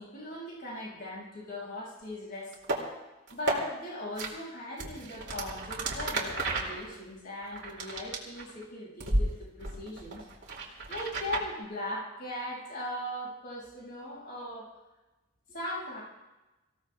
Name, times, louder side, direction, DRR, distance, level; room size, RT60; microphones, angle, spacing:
voice 1, 0.0-2.5 3.3-10.2 10.6-14.7 15.5-16.0, left 1 dB, 45° left, -6 dB, 6.6 m, -39 dB
sound 1, 2.5-2.8 3.3-3.6 4.2-4.3 4.8-8.6 9.0-9.2 9.6-11.5, right 2 dB, 55° right, 2.8 m, -32 dB
24.5 x 16.0 x 2.4 m, 1.1 s
head